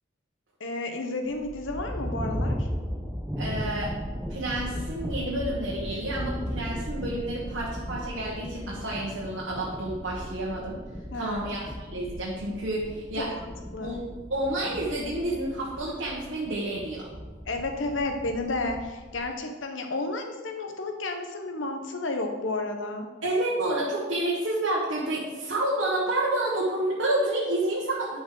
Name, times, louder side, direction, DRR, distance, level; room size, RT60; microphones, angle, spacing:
voice 1, 0.6-2.7 11.1-11.6 13.2-14.0 17.5-23.1, left 2 dB, 75° left, 5 dB, 1.0 m, -32 dB
sound 1, 1.3-19.3, equal, 5° right, 0.7 m, -36 dB
voice 2, 3.4-3.9 4.3-10.8 11.1-13.3 13.8-14.0 14.3-17.1 23.2-28.2, right 1 dB, 75° right, -6 dB, 1.5 m, -29 dB
10.5 x 5.2 x 3.9 m, 1.3 s
head